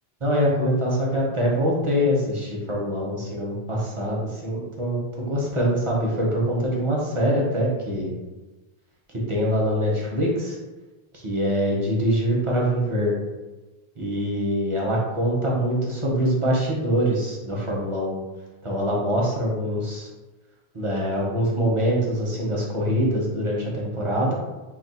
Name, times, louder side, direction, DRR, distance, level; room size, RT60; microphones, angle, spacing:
voice 1, 0.2-8.1 9.1-10.6 11.1-13.1 14.0-18.2 18.6-20.1 20.7-24.3, equal, 35° right, -4 dB, 0.6 m, -24 dB
2.3 x 2.3 x 4.0 m, 1.2 s
omnidirectional pair, 1.0 m